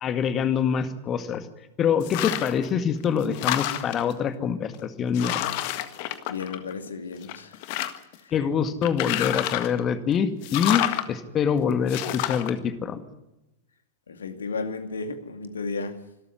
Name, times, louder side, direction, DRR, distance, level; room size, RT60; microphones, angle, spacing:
voice 1, 0.0-1.5 1.8-5.5 8.3-13.0, left 7 dB, 30° left, 2.0 m, -25 dB
sound 1, 2.0-2.7 3.0-4.1 4.7-4.8 5.1-6.9 7.2-8.2 8.8-9.8 10.4-11.1 11.9-12.5, left 14 dB, 45° left, 1.6 m, -29 dB
voice 2, 6.3-7.7 8.2-8.3 14.1-16.0, left 4 dB, 70° left, 2.3 m, -33 dB
25.5 x 13.5 x 9.7 m
figure-of-eight pair, 90°, 0 cm